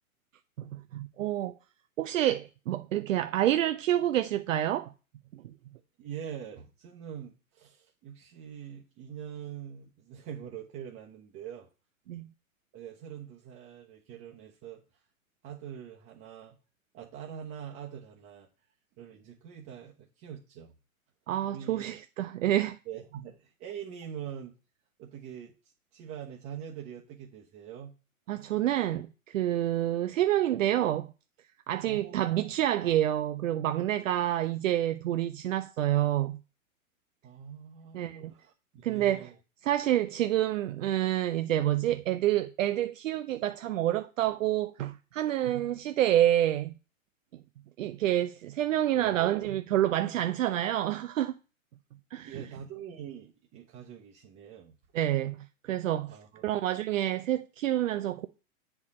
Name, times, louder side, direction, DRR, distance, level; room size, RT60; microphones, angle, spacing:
voice 1, 0.6-1.5 2.0-4.9 5.3-5.5 12.1-12.3 21.3-22.8 28.3-31.1 31.7-36.4 37.9-38.3 38.8-39.3 39.6-46.7 47.8-51.3 52.1-52.3 54.9-56.1 56.4-58.3, right 12 dB, 60° right, 0.7 m, -28 dB
voice 2, 6.0-11.7 12.7-15.0 15.4-16.6 16.9-18.5 19.0-20.8 21.4-21.9 22.8-24.6 25.0-25.5 25.9-28.0 28.4-28.5 31.8-32.5 37.2-39.3 48.9-49.2 52.2-54.8 56.1-56.4, right 9 dB, 30° right, 1.1 m, -44 dB
8.3 x 4.5 x 4.3 m
hypercardioid pair, 115°, 43 cm